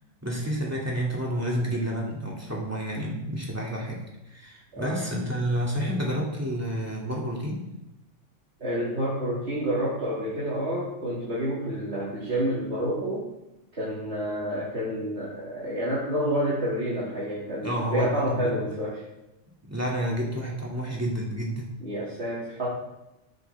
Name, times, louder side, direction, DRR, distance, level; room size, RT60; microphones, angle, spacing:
voice 1, 0.2-7.6 17.6-18.5 19.7-21.7, equal, 10° right, -4 dB, 2.5 m, -30 dB
voice 2, 4.7-5.1 8.6-13.3 13.8-19.0 21.8-22.7, equal, 60° right, -8 dB, 2.8 m, -29 dB
13.5 x 8.2 x 3.5 m, 0.95 s
omnidirectional pair, 1.3 m